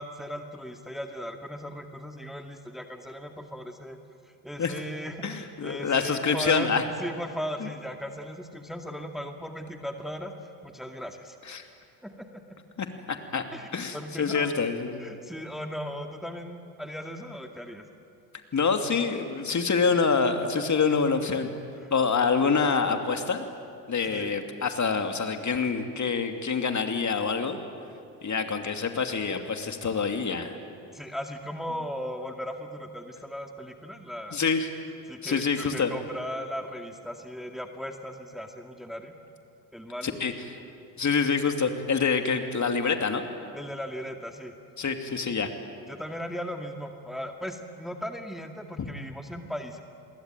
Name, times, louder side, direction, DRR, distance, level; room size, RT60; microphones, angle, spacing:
voice 1, 0.0-4.0 4.2-10.3 10.6-11.4 12.0-12.6 13.5-14.6 15.0-17.8 21.8-21.9 24.1-24.3 30.9-34.4 35.1-39.1 39.7-40.2 43.5-44.5 45.1-45.3 45.9-49.8, equal, ahead, 4 dB, 2.2 m, -37 dB
voice 2, 5.2-6.8 7.6-7.7 11.5-11.7 12.8-13.4 13.7-15.0 18.5-21.5 21.9-23.5 23.9-27.6 28.2-30.6 34.3-34.7 35.2-35.9 40.0-40.3 41.0-43.2 44.8-45.5 48.8-48.9, left 5 dB, 35° left, 6 dB, 2.8 m, -26 dB
28.0 x 22.0 x 9.2 m, 2.4 s
hypercardioid pair, 55°, 50 cm